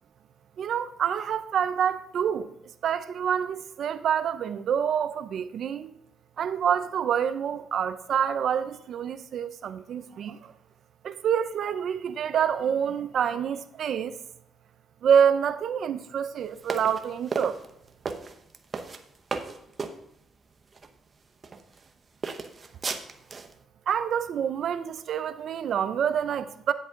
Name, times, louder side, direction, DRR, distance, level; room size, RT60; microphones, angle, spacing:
voice 1, 0.6-2.5 2.8-5.9 6.4-10.5 11.0-14.2 15.0-17.6 23.9-26.7, right 8 dB, 65° right, 0.6 m, -27 dB
sound 1, 16.6-20.0 20.7-20.9 21.4-21.9 22.2-23.5, right 4 dB, 35° right, 0.8 m, -34 dB
9.8 x 7.9 x 3.7 m
cardioid pair, 90°, 0 cm